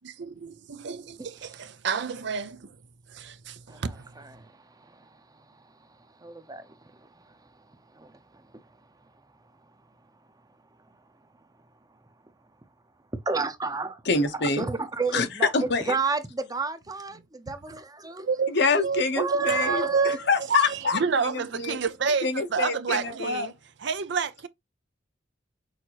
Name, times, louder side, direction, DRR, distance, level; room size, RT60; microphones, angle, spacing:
voice 1, 0.0-2.8 3.1-4.1 18.3-18.5 18.8-19.0 19.3-20.2 20.5-23.5 23.8-24.5, right 5 dB, 65° right, 0.6 m, -29 dB
voice 2, 3.7-7.5 7.9-8.7 13.3-14.0 14.3-18.3 19.2-20.2, right 4 dB, 20° right, 0.8 m, -32 dB
voice 3, 14.1-14.7 15.1-15.3 15.5-15.9 18.5-21.0 21.6-21.8 22.2-23.5, left 4 dB, 60° left, 0.9 m, -26 dB
6.4 x 2.7 x 2.9 m
head